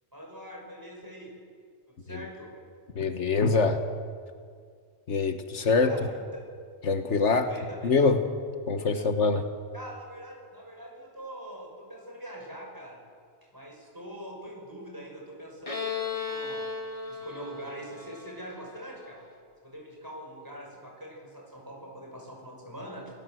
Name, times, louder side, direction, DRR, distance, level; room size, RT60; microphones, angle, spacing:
voice 1, 0.1-1.3 1.9-2.5 5.8-6.4 7.3-7.9 9.7-13.0 13.5-15.7 16.3-16.6 17.1-19.2 19.6-23.1, equal, 15° right, -1 dB, 6.1 m, -43 dB
voice 2, 2.9-3.8 5.1-5.9 6.8-7.5 7.8-8.3 8.7-9.5, left 4 dB, 75° left, 7 dB, 1.6 m, -24 dB
Bowed string instrument, 15.7-19.2, left 5 dB, 30° left, 2.1 m, -36 dB
28.5 x 18.5 x 7.8 m, 2.1 s
omnidirectional pair, 1.2 m